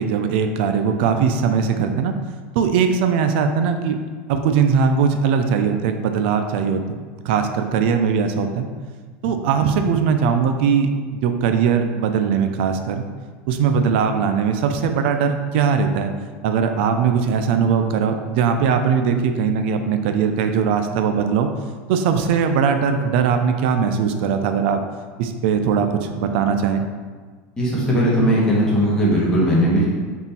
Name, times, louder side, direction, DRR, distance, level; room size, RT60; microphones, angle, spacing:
voice 1, 0.0-2.1 2.6-4.0 4.3-7.0 7.3-8.7 9.2-10.9 11.2-13.0 13.5-16.1 16.4-21.5 21.9-24.8 25.2-25.9 26.2-26.8, right 6 dB, 65° right, 6 dB, 0.3 m, -20 dB
voice 2, 27.6-29.9, equal, 10° left, -6 dB, 0.9 m, -18 dB
3.6 x 2.4 x 4.2 m, 1.5 s
supercardioid pair, 160°, 6 cm